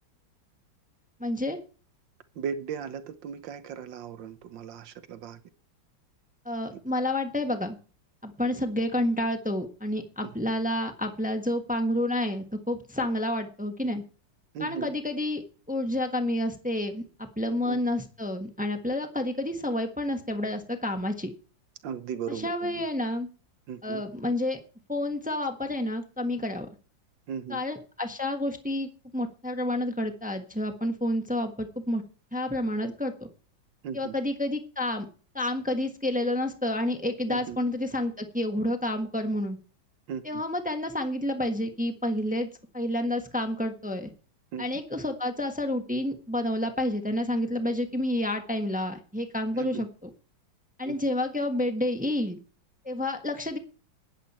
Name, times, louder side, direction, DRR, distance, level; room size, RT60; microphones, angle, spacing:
voice 1, 1.2-1.6 6.4-7.8 8.2-14.0 14.6-21.3 22.3-23.3 23.8-24.6 24.9-26.7 27.5-32.0 32.3-33.3 33.9-35.1 35.3-39.6 40.2-42.5 42.7-44.1 44.6-49.9 50.8-52.4 52.8-53.6, left 1 dB, 5° right, 5 dB, 1.0 m, -29 dB
voice 2, 2.3-5.4 10.2-10.3 14.5-14.9 17.5-17.8 21.8-22.8 23.7-24.0 27.3-27.6 33.8-34.1 37.3-37.6 40.1-40.4 44.5-44.8 49.6-49.9 50.8-51.0, right 7 dB, 70° right, 12 dB, 1.7 m, -37 dB
15.5 x 10.5 x 4.3 m, 0.38 s
omnidirectional pair, 2.1 m